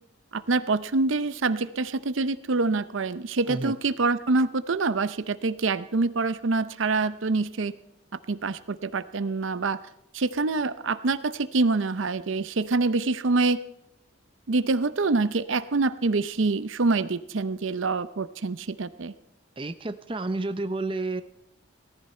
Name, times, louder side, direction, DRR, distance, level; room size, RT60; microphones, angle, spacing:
voice 1, 0.3-7.7 8.3-9.8 10.1-13.6 14.5-19.1, right 3 dB, 75° right, 14 dB, 0.6 m, -26 dB
voice 2, 19.6-21.2, right 2 dB, 25° right, 9 dB, 0.6 m, -30 dB
18.0 x 14.0 x 4.4 m, 0.80 s
head